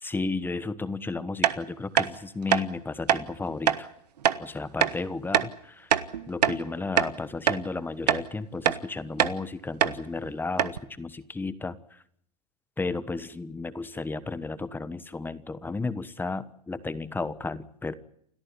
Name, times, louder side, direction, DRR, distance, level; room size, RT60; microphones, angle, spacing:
voice 1, 0.0-3.9 4.4-5.9 6.3-12.0 12.8-17.9, left 3 dB, 10° left, 14 dB, 1.2 m, -33 dB
sound 1, 1.4-1.6 2.0-2.1 2.5-2.6 3.1-3.2 3.7-3.8 4.2-4.4 4.8-5.0 5.3-5.5 5.9-6.6 7.0-7.1 7.5-7.6 8.1-8.3 8.6-8.8 9.2-9.4 9.8-10.0 10.2-10.3 10.6-10.8, right 9 dB, 90° right, 1.3 m, -23 dB
29.0 x 13.5 x 9.9 m, 0.70 s
hypercardioid pair, 115°, 20 cm